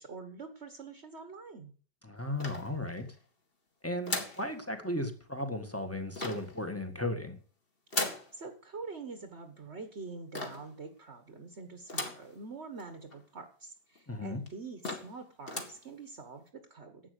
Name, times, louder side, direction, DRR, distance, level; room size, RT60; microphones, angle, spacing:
voice 1, 0.0-1.7 8.3-17.0, right 4 dB, 40° right, 8 dB, 1.5 m, -45 dB
voice 2, 2.0-3.1 3.8-7.4 14.1-14.4, left 1 dB, 10° left, 6 dB, 1.5 m, -35 dB
sound 1, 2.4-3.1 4.0-4.5 6.1-6.6 7.9-8.3 10.3-10.7 11.9-12.3 12.8-12.9 13.1-13.2 14.0-14.1 14.5-14.6 14.8-15.2 15.4-15.8, left 2 dB, 30° left, 2.2 m, -36 dB
11.5 x 8.5 x 6.7 m, 0.43 s
omnidirectional pair, 1.9 m